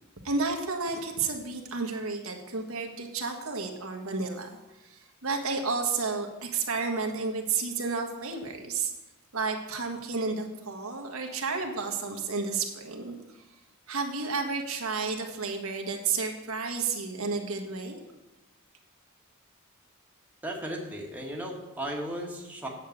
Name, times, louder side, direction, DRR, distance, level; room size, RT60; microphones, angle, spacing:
voice 1, 0.2-4.5 5.2-8.9 9.3-13.1 13.9-18.0, right 4 dB, 80° right, 4 dB, 1.5 m, -31 dB
voice 2, 20.4-22.7, right 1 dB, 10° right, -1 dB, 1.7 m, -35 dB
8.9 x 6.5 x 8.0 m, 1.0 s
head